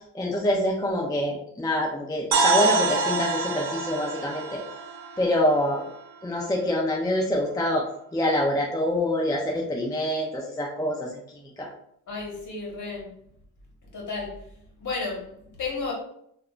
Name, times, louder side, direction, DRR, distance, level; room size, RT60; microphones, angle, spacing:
voice 1, 0.1-4.6 5.2-5.8 6.2-7.9 8.1-11.1 11.6-11.7, left 1 dB, 10° left, -1 dB, 0.5 m, -25 dB
sound 1, 2.3-6.3, right 4 dB, 60° right, 0.7 m, -27 dB
voice 2, 12.1-13.1 13.9-14.4 14.8-15.3 15.6-15.9, left 4 dB, 45° left, -2 dB, 1.4 m, -32 dB
3.4 x 2.4 x 2.4 m, 0.71 s
cardioid pair, 80°, 42 cm